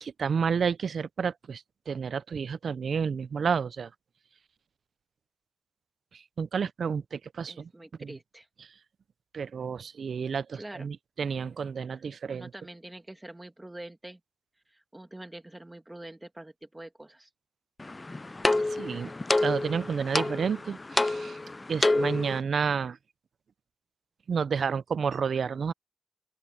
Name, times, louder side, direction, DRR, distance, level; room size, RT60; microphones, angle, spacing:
voice 1, 0.0-3.9 6.1-7.7 8.0-8.1 9.3-12.5 18.8-19.1 19.4-21.4 21.7-23.0 24.3-25.7, right 6 dB, 90° right, 0.4 m, -30 dB
voice 2, 7.5-8.5 10.5-10.9 12.3-14.2 14.7-17.3, right 1 dB, 20° right, 2.4 m, -45 dB
sound 1, 17.8-22.4, left 2 dB, 30° left, 0.3 m, -28 dB
open air
wide cardioid pair, 80°, 0 cm